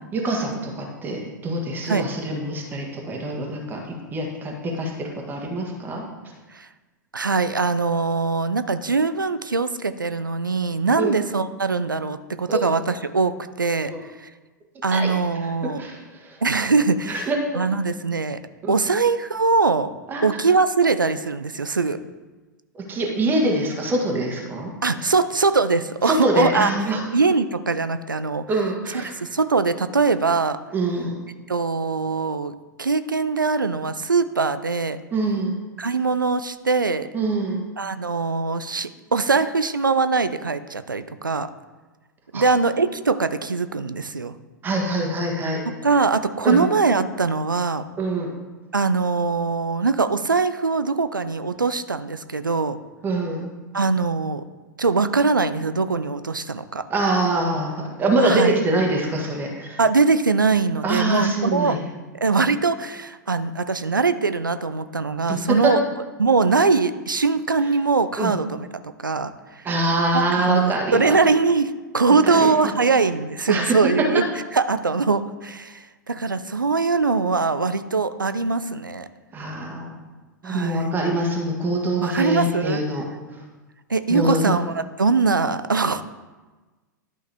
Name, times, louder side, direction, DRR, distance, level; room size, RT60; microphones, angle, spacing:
voice 1, 0.1-6.0 11.0-11.2 12.5-12.7 13.9-14.1 14.9-15.1 15.8-16.4 17.1-17.4 18.6-18.7 20.1-20.2 22.9-24.7 25.0-25.1 26.0-27.0 28.5-29.1 30.7-31.1 35.1-35.6 37.1-37.7 42.3-42.4 44.6-45.6 46.4-46.7 48.0-48.4 53.0-53.5 56.9-59.8 60.8-61.8 65.3-65.7 68.2-68.3 69.6-71.2 72.3-72.5 73.5-73.7 79.3-79.9 80.4-83.0 84.1-84.5, right 2 dB, 20° right, 0 dB, 1.5 m, -24 dB
voice 2, 7.1-13.9 14.2-14.3 14.8-15.8 16.4-17.3 17.5-18.4 18.7-19.9 20.2-22.0 24.8-26.7 27.1-28.4 29.2-30.6 31.5-35.0 35.8-37.1 37.8-41.5 42.3-44.4 45.7-47.8 48.7-52.8 53.7-54.4 54.8-56.8 58.2-58.6 59.8-61.8 62.2-65.8 66.2-68.7 69.0-69.6 70.1-74.3 74.5-79.1 80.4-80.9 82.0-82.8 83.9-86.0, right 4 dB, 85° right, 12 dB, 0.4 m, -22 dB
11.5 x 5.5 x 3.5 m, 1.2 s
figure-of-eight pair, 100°, 10 cm